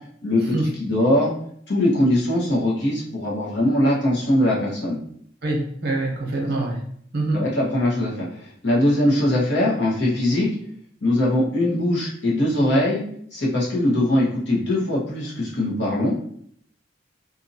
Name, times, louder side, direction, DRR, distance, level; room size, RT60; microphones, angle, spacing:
voice 1, 0.2-0.5 0.8-1.3 1.7-5.0 6.4-6.5 7.3-10.5 11.0-13.0 13.3-16.2, left 1 dB, 70° left, -5 dB, 1.1 m, -21 dB
voice 2, 5.4-6.8 7.1-7.4, right 2 dB, 60° right, -1 dB, 0.8 m, -24 dB
2.7 x 2.6 x 2.7 m, 0.64 s
head